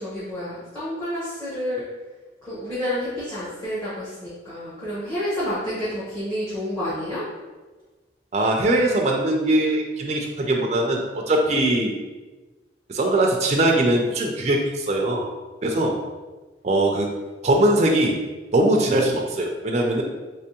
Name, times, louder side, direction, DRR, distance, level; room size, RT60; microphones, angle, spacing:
voice 1, 0.0-1.8 2.4-7.2, left 1 dB, 15° left, -11 dB, 1.0 m, -29 dB
voice 2, 8.3-11.9 12.9-15.3 15.6-16.0 16.6-17.1 17.4-18.2 18.5-20.0, right 1 dB, 35° right, 1 dB, 0.4 m, -21 dB
3.3 x 3.3 x 2.9 m, 1.2 s
head